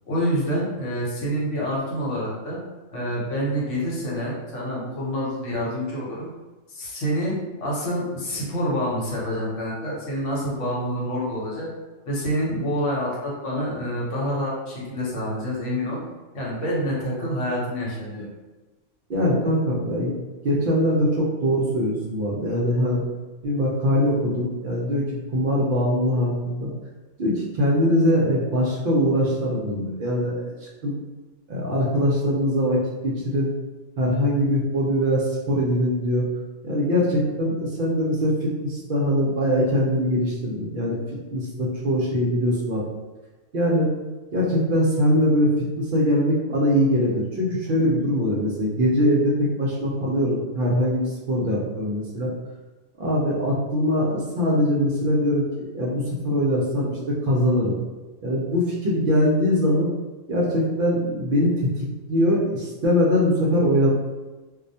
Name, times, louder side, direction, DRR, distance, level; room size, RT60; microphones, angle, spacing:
voice 1, 0.1-2.6 2.9-6.3 6.7-11.7 12.0-16.0 16.3-18.3, equal, 70° left, -5 dB, 1.1 m, -27 dB
voice 2, 19.1-20.2 20.4-23.0 23.4-25.0 25.3-26.7 27.2-30.9 31.5-32.8 33.0-33.5 34.0-36.3 36.6-41.0 41.3-42.8 43.5-43.9 44.3-52.3 53.0-57.8 58.2-59.9 60.3-61.7 62.1-63.9, equal, 60° right, -4 dB, 0.6 m, -22 dB
2.3 x 2.1 x 2.6 m, 1.2 s
omnidirectional pair, 1.3 m